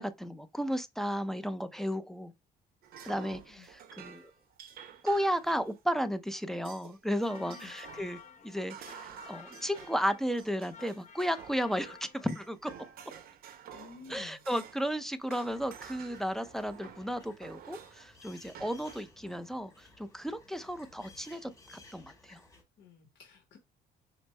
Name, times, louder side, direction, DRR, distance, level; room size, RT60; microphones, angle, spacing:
voice 1, 0.0-2.3 3.0-4.3 5.0-12.7 14.1-22.4, equal, ahead, 0.4 m, -34 dB
sound 1, 2.8-6.1 6.6-7.0 7.2-15.0 15.3-18.1 18.5-19.0, right 8 dB, 60° right, 0.7 m, -50 dB
sound 2, 7.1-12.5, left 7 dB, 45° left, 0.7 m, -53 dB
voice 2, 7.3-7.7 13.7-14.4 22.8-23.6, left 5 dB, 75° left, 1.0 m, -52 dB
sound 3, 15.4-22.6, left 2 dB, 20° left, 1.1 m, -57 dB
5.1 x 2.0 x 3.1 m
cardioid pair, 110°, 17 cm